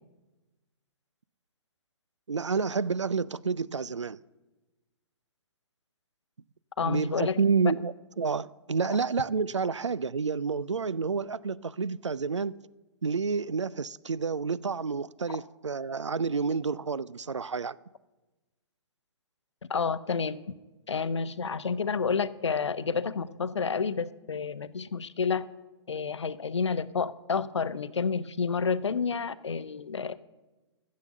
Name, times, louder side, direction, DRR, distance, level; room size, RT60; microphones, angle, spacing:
voice 1, 2.3-4.2 6.8-12.5 13.0-17.8, right 5 dB, 85° right, 0.4 m, -29 dB
voice 2, 6.8-7.4 15.3-15.4 19.7-20.4 20.9-25.5 25.9-30.2, left 5 dB, 75° left, 0.7 m, -29 dB
14.0 x 7.6 x 7.4 m
figure-of-eight pair, 120°, 15 cm